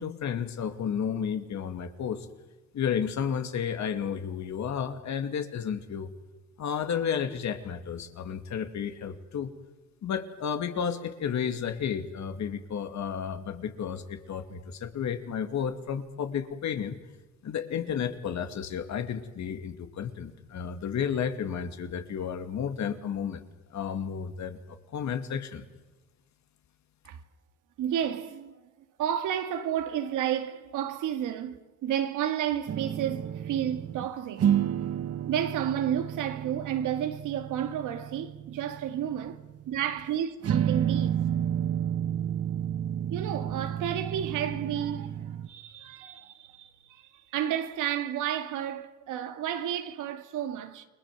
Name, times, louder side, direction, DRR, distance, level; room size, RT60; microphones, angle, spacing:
voice 1, 0.0-2.3 2.7-6.1 6.6-9.5 10.0-17.0 17.4-23.4 23.7-24.6 24.9-25.6, left 7 dB, 65° left, 2.6 m, -32 dB
voice 2, 27.8-28.5 29.0-34.5 35.3-39.4 39.7-41.2 43.1-50.8, right 10 dB, 90° right, 2.2 m, -31 dB
sound 1, 32.7-34.1 34.4-40.1 40.4-45.5, right 9 dB, 50° right, 1.1 m, -31 dB
29.5 x 22.0 x 7.7 m
cardioid pair, 90°, 30 cm